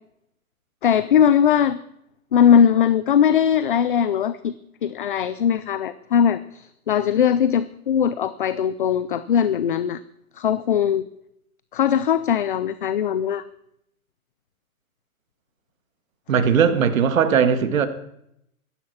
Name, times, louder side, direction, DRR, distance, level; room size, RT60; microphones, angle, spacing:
voice 1, 0.8-1.8 2.3-4.5 4.8-10.0 10.4-11.0 11.7-13.4, left 8 dB, 40° left, 15 dB, 0.5 m, -20 dB
voice 2, 16.3-17.9, right 7 dB, 65° right, 9 dB, 2.1 m, -18 dB
15.5 x 12.0 x 7.2 m, 0.78 s
hypercardioid pair, 165°, 43 cm